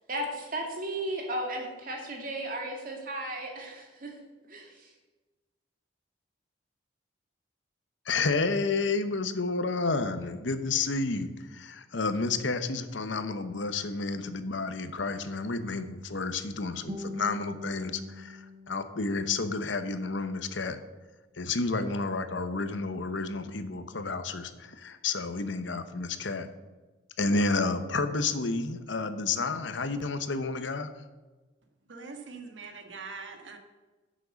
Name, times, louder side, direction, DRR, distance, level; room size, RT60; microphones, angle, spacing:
voice 1, 0.1-4.2 4.4-4.9, right 1 dB, 45° right, 1 dB, 2.5 m, -35 dB
voice 2, 8.1-20.8 21.4-26.5 27.2-30.9, left 3 dB, 70° left, 10 dB, 0.9 m, -30 dB
Guitar, 16.9-19.9, left 1 dB, 25° right, 1.3 m, -43 dB
voice 3, 31.8-33.6, right 4 dB, 75° right, 5 dB, 1.6 m, -43 dB
10.5 x 7.5 x 6.9 m, 1.2 s
head